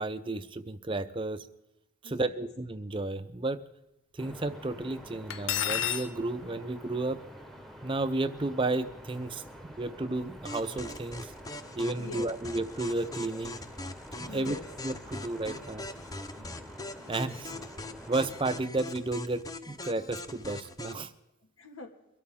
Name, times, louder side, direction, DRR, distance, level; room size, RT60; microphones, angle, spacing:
voice 1, 0.0-1.5 2.0-3.6 4.1-7.2 7.8-11.3 11.8-13.6 14.2-14.6 14.8-15.9 17.1-17.5 18.1-21.1, right 2 dB, 25° right, 11 dB, 0.5 m, -32 dB
voice 2, 2.0-2.5 12.0-12.3 14.3-14.7 15.4-15.6 16.4-16.8 17.5-18.0 21.4-21.9, left 2 dB, 85° left, 5 dB, 2.1 m, -46 dB
sound 1, 4.2-18.7, equal, ahead, 1.1 m, -48 dB
Cutlery silverware, 5.3-6.1, left 11 dB, 60° left, 0.8 m, -29 dB
sound 2, 10.4-21.1, left 2 dB, 15° left, 0.6 m, -42 dB
23.5 x 13.0 x 3.7 m, 0.93 s
head